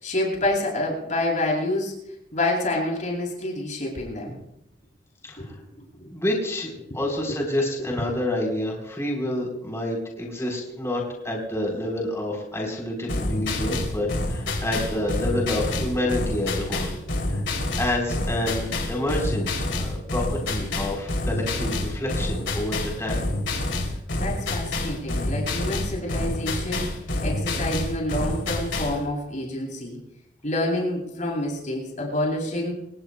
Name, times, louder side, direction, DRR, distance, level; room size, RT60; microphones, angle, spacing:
voice 1, 0.0-1.9 2.3-4.4 5.4-5.5 6.0-6.1 13.6-13.7 24.2-26.9 27.2-30.0 30.4-32.7, left 1 dB, 40° left, -1 dB, 7.5 m, -27 dB
voice 2, 5.2-5.6 6.1-16.9 17.3-17.4 17.8-23.2, left 1 dB, 15° left, -1 dB, 3.9 m, -28 dB
sound 1, 13.1-29.0, left 2 dB, 70° left, 3.0 m, -28 dB
27.5 x 18.5 x 2.2 m, 0.80 s
head